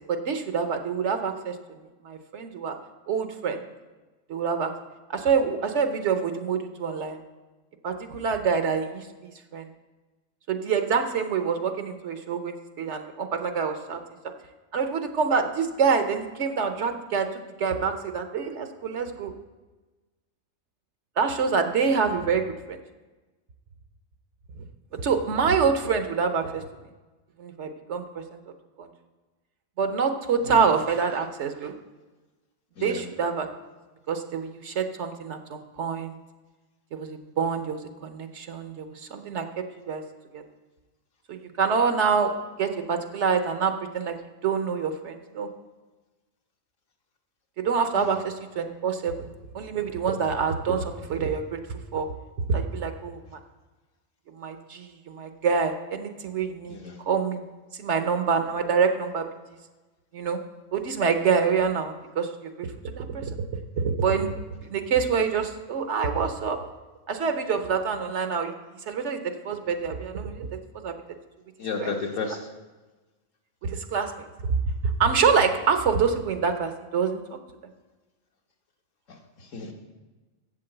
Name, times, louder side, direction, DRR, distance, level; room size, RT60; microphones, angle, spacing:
voice 1, 0.1-1.5 2.0-2.7 3.1-3.6 4.3-4.7 5.1-7.2 7.8-9.7 10.5-14.0 14.7-19.3 21.2-22.8 24.9-26.7 27.4-28.4 28.8-28.9 29.8-31.7 32.8-33.5 34.1-36.2 36.9-40.0 40.3-40.4 41.3-42.3 42.6-44.2 44.4-45.5 47.6-49.3 49.5-52.1 52.5-53.4 54.3-56.8 57.1-57.4 57.8-59.3 60.1-60.4 60.7-62.7 63.0-63.3 63.8-64.3 64.7-66.6 67.1-68.5 68.9-70.5 70.8-70.9 71.8-71.9 73.6-74.3 74.8-77.2, right 5 dB, 60° right, 7 dB, 1.0 m, -26 dB
voice 2, 71.6-72.5 79.1-79.7, left 4 dB, 65° left, 2 dB, 1.5 m, -33 dB
7.6 x 7.3 x 7.7 m, 1.2 s
omnidirectional pair, 1.5 m